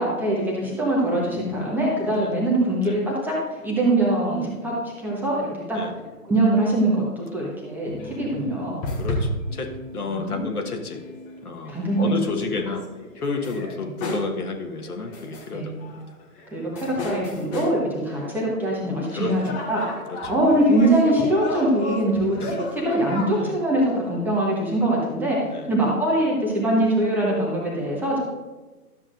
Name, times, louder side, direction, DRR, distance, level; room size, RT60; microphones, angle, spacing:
voice 1, 0.0-5.8 6.2-8.8 10.1-10.5 11.7-12.1 13.8-13.9 15.5-15.8 16.5-19.8 20.3-28.2, right 1 dB, 5° right, -4 dB, 1.0 m, -23 dB
voice 2, 1.0-1.6 2.1-2.3 2.8-3.0 5.7-5.9 9.0-11.0 11.4-12.9 13.1-16.2 19.1-19.3 20.1-20.3 22.4-22.6 23.4-23.6 25.5-25.7, left 3 dB, 75° left, 4 dB, 1.5 m, -31 dB
sound 1, 7.8-10.5 10.9-12.3 12.5-13.7 14.0-14.4 14.8-15.5 15.8-17.8 18.1-18.8 19.3-23.3, left 1 dB, 15° left, 1.1 m, -33 dB
12.0 x 7.1 x 2.5 m, 1.2 s
figure-of-eight pair, 135°, 45 cm